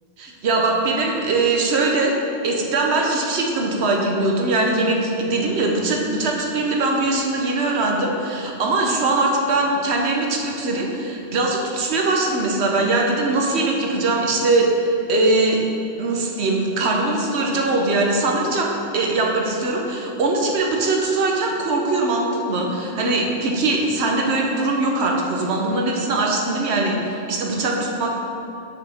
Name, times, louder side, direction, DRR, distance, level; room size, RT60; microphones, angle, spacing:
voice 1, 0.2-2.1 2.4-15.6 16.0-28.1, right 2 dB, 85° right, 0 dB, 1.1 m, -21 dB
6.6 x 6.2 x 3.4 m, 2.7 s
omnidirectional pair, 1.1 m